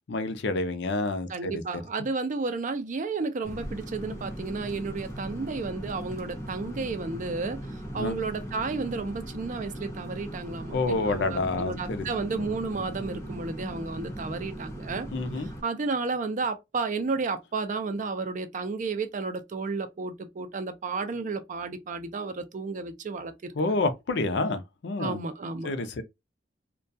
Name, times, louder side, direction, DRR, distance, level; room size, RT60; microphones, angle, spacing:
voice 1, 0.1-1.5 8.0-8.1 10.7-12.0 15.1-15.5 23.6-25.2 25.6-26.0, left 2 dB, 70° left, 0.5 m, -28 dB
voice 2, 1.3-15.1 15.4-23.8 25.0-25.7, right 4 dB, 45° right, 0.4 m, -32 dB
sound 1, 3.4-15.6, equal, 15° left, 0.7 m, -39 dB
2.3 x 2.2 x 2.5 m
head